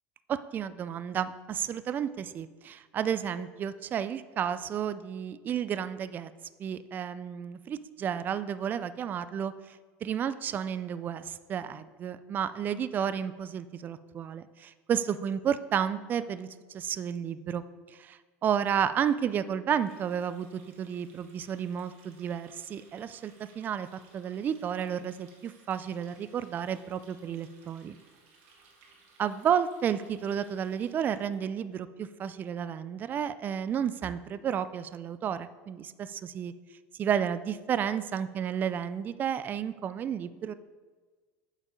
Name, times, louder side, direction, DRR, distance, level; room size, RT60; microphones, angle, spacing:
voice 1, 0.3-6.3 6.6-17.6 17.9-23.9 24.1-28.0 29.2-36.5 37.0-40.5, right 8 dB, 30° right, 14 dB, 0.3 m, -32 dB
Water tap faucet, 19.8-31.3, right 4 dB, 85° right, 1.9 m, -61 dB
8.0 x 5.2 x 5.0 m, 1.4 s
supercardioid pair, 135°, 7 cm